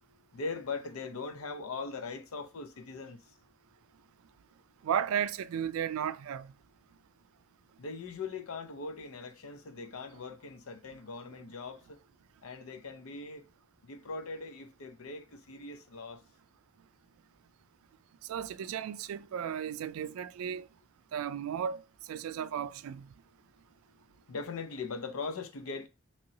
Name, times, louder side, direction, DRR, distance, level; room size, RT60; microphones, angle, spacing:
voice 1, 0.3-3.2 7.8-11.8 12.4-13.5 13.8-16.2 24.3-25.9, left 4 dB, 90° left, 0.6 m, -40 dB
voice 2, 4.8-6.5 18.3-20.7 21.1-21.8 22.1-23.1, right 8 dB, 85° right, 0.3 m, -34 dB
3.0 x 2.7 x 2.9 m
head